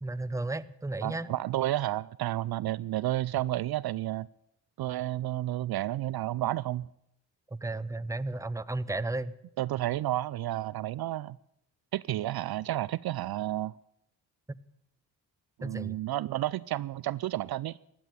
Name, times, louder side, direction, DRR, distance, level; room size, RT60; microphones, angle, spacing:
voice 1, 0.0-1.3 7.5-9.3 15.6-16.0, right 2 dB, 5° right, 0.8 m, -33 dB
voice 2, 1.0-4.3 4.8-6.9 9.6-11.4 11.9-13.7 15.6-17.8, right 14 dB, 60° right, 0.5 m, -31 dB
15.5 x 9.2 x 9.0 m
supercardioid pair, 40°, 44 cm